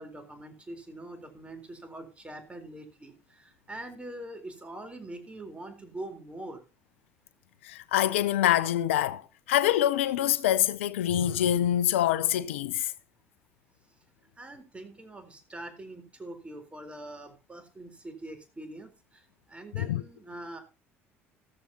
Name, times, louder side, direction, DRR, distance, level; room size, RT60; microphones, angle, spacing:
voice 1, 0.0-6.6 14.4-20.6, right 1 dB, 15° right, 4.0 m, -43 dB
voice 2, 7.6-9.2 9.5-12.9 19.7-20.0, left 12 dB, 70° left, 0.6 m, -25 dB
15.0 x 14.0 x 2.9 m
figure-of-eight pair, 60°, 7 cm